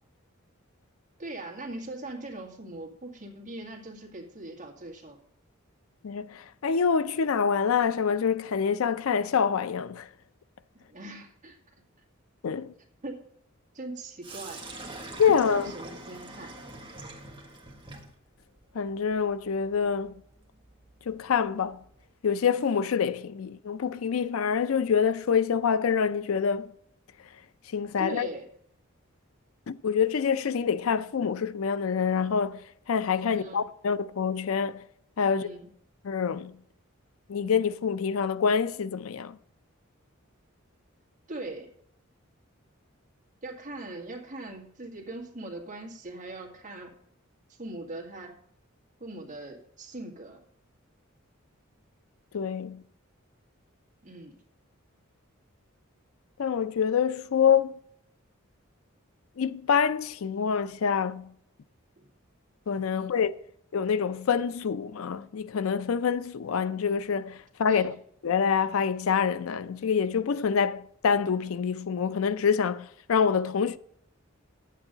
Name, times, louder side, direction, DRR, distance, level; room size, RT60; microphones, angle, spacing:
voice 1, 1.2-5.2 10.7-11.6 13.0-13.2 13.7-14.6 15.5-16.5 28.0-28.5 33.3-33.7 35.2-35.7 41.3-41.7 43.4-46.9 47.6-48.3 49.0-50.4 54.0-54.3 62.0-62.1 62.9-63.2 67.7-67.9, right 2 dB, 40° right, 2.0 m, -40 dB
voice 2, 6.0-10.1 12.4-12.7 15.2-15.7 18.7-20.1 21.1-21.8 22.2-26.7 27.7-28.3 29.7-34.8 35.2-35.5 36.0-36.5 37.3-39.4 52.3-52.8 56.4-57.8 59.4-61.3 62.7-63.4 63.7-67.9 68.2-73.8, left 6 dB, 80° left, 0.5 m, -26 dB
Sink (filling or washing), 14.2-22.1, right 2 dB, 25° right, 1.5 m, -45 dB
10.5 x 8.4 x 3.9 m
head